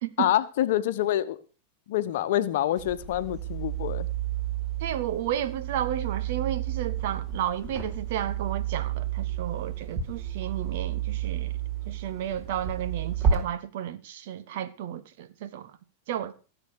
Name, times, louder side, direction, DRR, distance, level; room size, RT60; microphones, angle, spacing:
voice 1, 0.2-1.4 1.9-4.1, left 12 dB, 55° left, 1.1 m, -26 dB
sound 1, 2.8-13.4, right 9 dB, 25° right, 4.4 m, -31 dB
voice 2, 4.8-11.5 11.9-15.7 16.1-16.3, right 10 dB, 50° right, 1.4 m, -32 dB
17.5 x 7.7 x 6.6 m
figure-of-eight pair, 90°, 0 cm